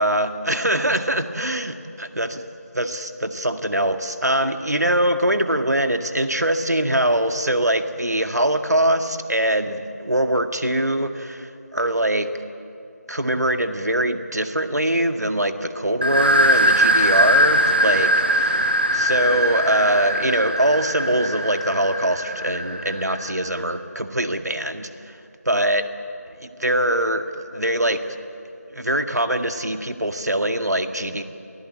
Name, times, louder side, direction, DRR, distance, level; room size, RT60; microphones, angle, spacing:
voice 1, 0.0-2.4 2.7-12.3 13.1-25.2 25.5-25.8 26.4-28.2 28.7-31.2, right 1 dB, 80° right, 7 dB, 1.9 m, -23 dB
sound 1, 16.0-23.5, right 1 dB, 40° right, 1.3 m, -21 dB
28.5 x 16.5 x 8.6 m, 2.7 s
figure-of-eight pair, 175°, 9 cm